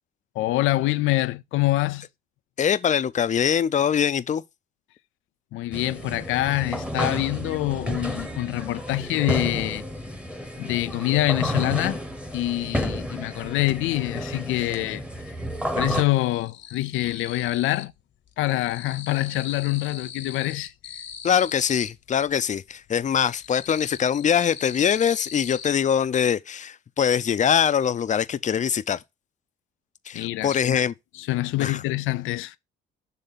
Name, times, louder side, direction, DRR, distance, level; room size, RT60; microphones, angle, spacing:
voice 1, 0.4-2.1 5.5-9.8 10.6-12.0 12.3-15.0 15.7-17.9 18.4-21.0 30.1-30.8 31.1-32.6, left 17 dB, 85° left, 0.4 m, -25 dB
voice 2, 2.6-4.4 21.2-29.0 30.1-30.9 31.6-31.8, left 8 dB, 40° left, 0.6 m, -23 dB
sound 1, 5.7-16.0, equal, 5° right, 1.2 m, -31 dB
sound 2, 13.1-14.1 14.4-15.1 15.3-18.0 18.3-22.4 22.9-25.7, left 8 dB, 70° left, 1.1 m, -41 dB
6.7 x 3.5 x 5.6 m
cardioid pair, 90°, 20 cm